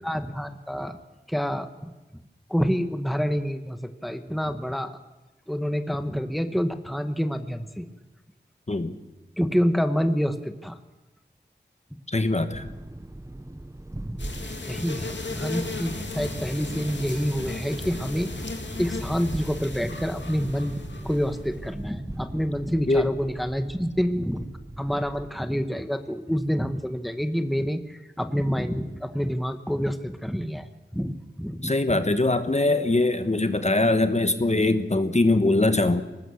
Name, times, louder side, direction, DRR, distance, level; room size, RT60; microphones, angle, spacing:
voice 1, 0.0-1.0 1.3-1.9 2.5-4.9 5.5-7.9 9.4-10.8 14.1-14.2 14.7-18.4 18.7-24.5 24.8-32.0, equal, ahead, 9 dB, 1.3 m, -27 dB
voice 2, 12.1-12.7 22.9-23.1 31.6-36.0, left 2 dB, 40° left, 10 dB, 1.3 m, -22 dB
sound 1, 12.5-25.3, right 1 dB, 15° right, 0.8 m, -39 dB
sound 2, 14.2-21.7, left 3 dB, 80° left, 2.3 m, -36 dB
23.5 x 19.5 x 7.1 m, 1.1 s
wide cardioid pair, 65°, 18 cm